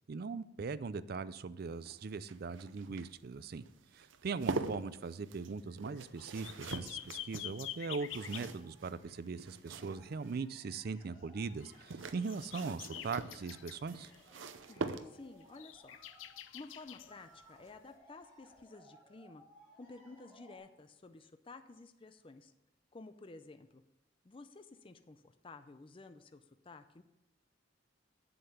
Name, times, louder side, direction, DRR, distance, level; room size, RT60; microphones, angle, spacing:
voice 1, 0.1-3.7 3.9-14.1, right 4 dB, 55° right, 15 dB, 0.4 m, -40 dB
sound 1, 1.6-10.4 11.6-15.5 17.1-17.4 17.7-17.8, right 3 dB, 90° right, 0.7 m, -44 dB
sound 2, 5.4-5.5 6.2-6.4 6.8-20.6, equal, 10° right, 4.4 m, -64 dB
sound 3, 5.6-5.7 5.9-8.5 11.5-14.4 14.7-14.9 15.4-17.1 18.6-18.7, left 12 dB, 90° left, 0.6 m, -47 dB
voice 2, 14.7-16.0 16.5-19.4 19.8-22.5 22.9-23.8 24.2-27.0, left 3 dB, 30° left, 9 dB, 0.5 m, -53 dB
7.9 x 7.6 x 6.8 m, 0.95 s
head